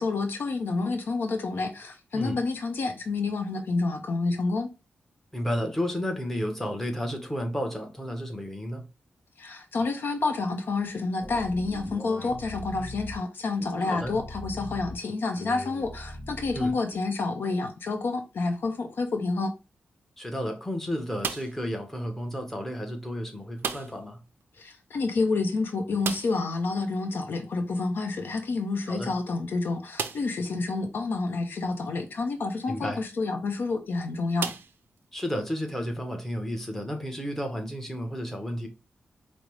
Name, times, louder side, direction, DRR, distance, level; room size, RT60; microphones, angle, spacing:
voice 1, 0.0-4.7 9.4-19.5 24.6-34.5, left 3 dB, 70° left, 0.6 m, -29 dB
voice 2, 5.3-8.8 13.8-14.2 16.5-16.7 20.2-24.2 28.9-29.1 32.7-33.0 35.1-38.7, equal, 10° left, 0.9 m, -32 dB
sound 1, 11.2-13.2 13.6-15.0 15.4-17.0, left 1 dB, 45° left, 0.9 m, -40 dB
sound 2, 21.2-21.7 23.6-24.1 24.4-24.5 24.8-24.9 26.0-26.6 28.3-28.4 29.0-29.1 29.9-30.4 31.2-31.3 33.3-33.5 34.4-35.3, right 7 dB, 80° right, 0.4 m, -34 dB
5.0 x 2.0 x 3.0 m
wide cardioid pair, 95°, 4 cm